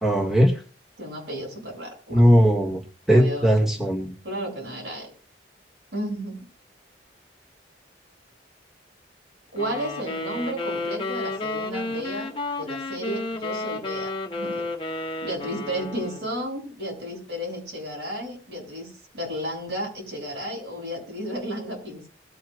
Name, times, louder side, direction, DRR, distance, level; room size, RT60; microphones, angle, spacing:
voice 1, 0.0-0.6 2.1-2.8 3.1-4.1, equal, ahead, -1 dB, 2.2 m, -18 dB
voice 2, 1.0-2.2 3.1-3.6 4.2-5.1 5.9-6.4 9.5-12.3 12.6-14.7 15.2-22.1, equal, 70° right, -1 dB, 7.8 m, -33 dB
sound 1, 9.6-16.4, left 2 dB, 25° left, 1.4 m, -32 dB
21.0 x 9.2 x 2.6 m, 0.39 s
head